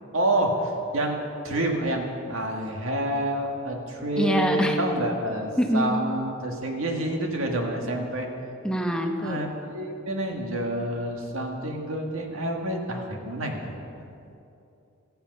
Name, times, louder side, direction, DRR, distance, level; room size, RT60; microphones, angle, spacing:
voice 1, 0.1-1.2 1.4-8.3 9.2-13.7, right 1 dB, 85° right, 2 dB, 2.0 m, -28 dB
voice 2, 4.2-4.8 5.6-5.9 8.6-9.5, equal, 5° left, 3 dB, 0.9 m, -24 dB
16.0 x 14.0 x 5.5 m, 2.7 s
head